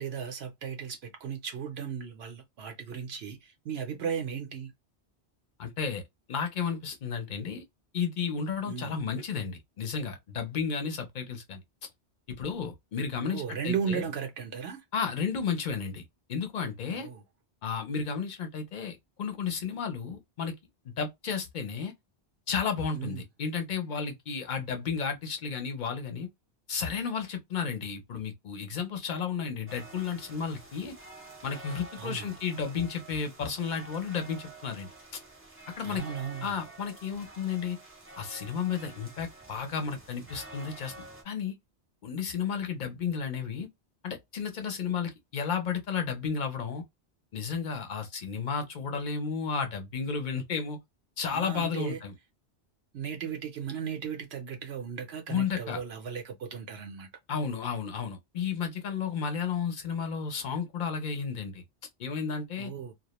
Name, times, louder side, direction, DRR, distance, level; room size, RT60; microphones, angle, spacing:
voice 1, 0.0-4.7 8.7-9.0 13.3-14.8 16.9-17.2 22.9-23.3 32.0-32.4 35.8-36.6 51.3-52.0 52.9-57.1 62.6-62.9, right 7 dB, 70° right, 0.9 m, -36 dB
voice 2, 5.6-6.0 6.3-7.6 7.9-11.6 12.3-14.0 14.9-16.0 16.3-17.1 17.6-20.5 20.8-21.9 22.5-26.3 26.7-30.9 31.4-34.9 35.7-36.0 36.4-37.8 38.2-40.9 41.2-41.6 42.0-43.7 44.0-46.8 47.3-50.8 51.2-52.1 55.3-55.8 57.3-61.6 62.0-62.7, left 6 dB, 50° left, 0.7 m, -33 dB
sound 1, 29.7-41.2, right 2 dB, 15° right, 0.6 m, -49 dB
2.2 x 2.1 x 2.9 m
omnidirectional pair, 1.1 m